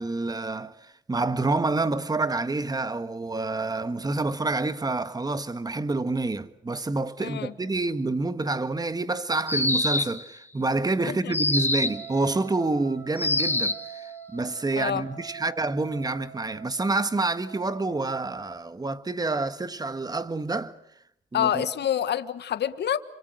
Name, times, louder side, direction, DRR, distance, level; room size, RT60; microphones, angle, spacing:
voice 1, 0.0-20.7 21.3-21.7, right 3 dB, 20° right, 1.5 m, -28 dB
voice 2, 7.2-7.5 11.0-11.3 14.8-15.0 21.3-23.0, left 10 dB, 60° left, 1.4 m, -27 dB
sound 1, 9.5-10.3 11.3-12.1 13.2-13.9, left 2 dB, 10° left, 2.1 m, -25 dB
Wind instrument woodwind instrument, 11.8-18.5, right 8 dB, 80° right, 5.9 m, -45 dB
28.5 x 26.5 x 6.4 m
cardioid pair, 90°, 20 cm